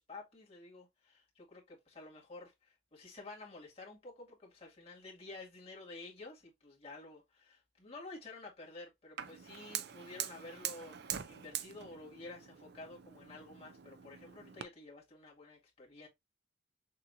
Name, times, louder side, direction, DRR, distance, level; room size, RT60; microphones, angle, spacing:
voice 1, 0.0-16.1, left 3 dB, 30° left, 2.2 m, -51 dB
Fire, 9.2-14.6, right 10 dB, 55° right, 0.5 m, -44 dB
6.7 x 2.8 x 2.6 m
head